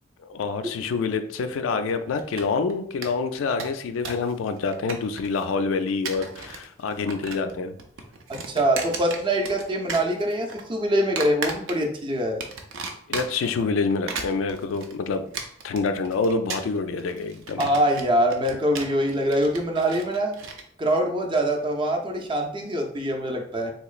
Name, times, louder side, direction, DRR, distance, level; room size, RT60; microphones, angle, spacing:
voice 1, 0.2-7.7 13.1-15.2 15.6-17.6, left 4 dB, 90° left, 9 dB, 0.3 m, -27 dB
sound 1, 2.2-2.7 3.0-3.1 3.4-4.3 4.6-5.4 5.9-6.6 6.9-7.5 7.8-9.6 9.9-10.6 11.2-12.0 12.4-13.5 13.9-20.6, right 4 dB, 90° right, 0.5 m, -35 dB
voice 2, 8.3-12.4 17.6-20.3 20.8-23.7, right 1 dB, 25° right, 1 dB, 0.5 m, -24 dB
3.8 x 3.0 x 2.4 m, 0.65 s
head